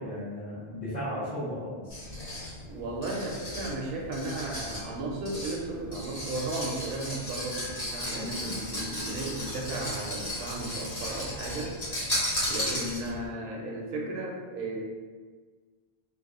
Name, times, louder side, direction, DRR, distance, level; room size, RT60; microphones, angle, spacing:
voice 1, 0.0-2.1, equal, 50° left, -14 dB, 0.9 m, -35 dB
sound 1, 1.9-13.3, left 1 dB, 85° left, 1.2 m, -35 dB
voice 2, 2.7-11.7 12.5-14.8, right 2 dB, 65° right, -1 dB, 0.7 m, -35 dB
2.5 x 2.2 x 2.3 m, 1.5 s
omnidirectional pair, 1.0 m